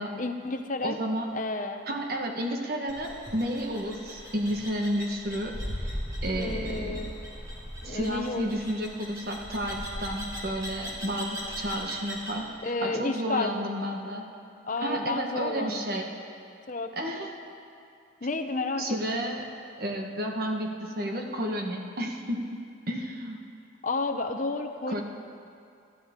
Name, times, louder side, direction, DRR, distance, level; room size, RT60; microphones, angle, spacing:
voice 1, 0.0-1.0 1.3-1.8 6.4-7.2 7.8-8.6 12.6-13.5 14.6-15.8 16.7-16.9 18.2-19.3 23.8-25.0, left 3 dB, 40° left, 6 dB, 0.7 m, -31 dB
voice 2, 0.8-1.3 1.9-5.9 6.2-7.0 7.8-14.2 14.8-16.1 17.0-17.3 18.8-19.5 19.8-23.4 24.9-25.0, equal, 50° right, 1 dB, 1.4 m, -31 dB
sound 1, 2.9-12.4, equal, 15° right, 2.4 m, -38 dB
24.5 x 12.5 x 3.7 m, 2.4 s
head